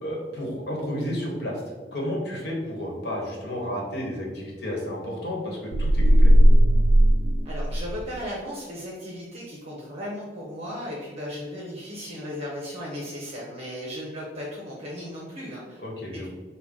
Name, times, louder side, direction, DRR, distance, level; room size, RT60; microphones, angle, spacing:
voice 1, 0.0-1.6 1.9-6.3 15.8-16.3, equal, 65° left, -2 dB, 1.2 m, -31 dB
sound 1, 5.7-8.1, equal, 70° right, 0.4 m, -17 dB
voice 2, 7.4-15.8, equal, 35° right, -5 dB, 0.7 m, -36 dB
5.5 x 2.2 x 3.6 m, 1.4 s
head